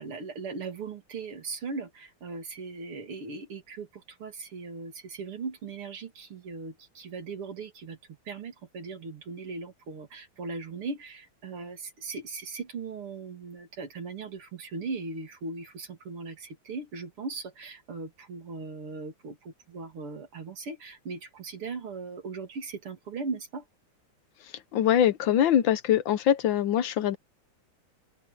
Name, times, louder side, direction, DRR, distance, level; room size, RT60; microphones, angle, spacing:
voice 1, 0.0-8.0 8.3-23.6, right 4 dB, 90° right, 3.6 m, -38 dB
voice 2, 24.7-27.2, left 10 dB, 70° left, 1.4 m, -23 dB
open air
omnidirectional pair, 2.4 m